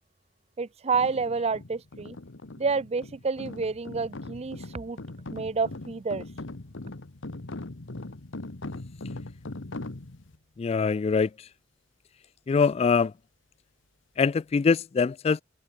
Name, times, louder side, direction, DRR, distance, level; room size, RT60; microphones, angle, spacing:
voice 1, 0.6-2.2 2.6-5.0 5.3-6.2, right 4 dB, 35° right, 0.5 m, -29 dB
sound 1, 0.9-10.4, left 2 dB, 80° left, 1.3 m, -40 dB
voice 2, 10.6-11.3 12.5-13.1 14.2-15.4, left 5 dB, 35° left, 0.3 m, -23 dB
open air
head